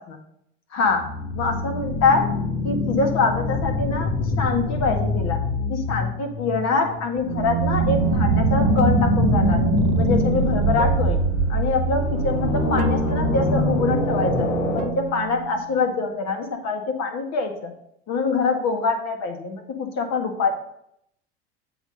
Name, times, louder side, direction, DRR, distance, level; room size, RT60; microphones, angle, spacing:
voice 1, 0.7-1.0 1.4-2.2 2.6-4.1 4.4-5.4 5.7-9.6 10.0-11.2 11.5-17.7 18.1-20.5, left 4 dB, 50° left, 4 dB, 1.8 m, -24 dB
sound 1, 0.8-14.9, left 4 dB, 80° left, 1.7 m, -25 dB
sound 2, 7.2-15.7, right 14 dB, 55° right, 0.6 m, -25 dB
7.8 x 4.2 x 6.4 m, 0.74 s
hypercardioid pair, 90°, 33 cm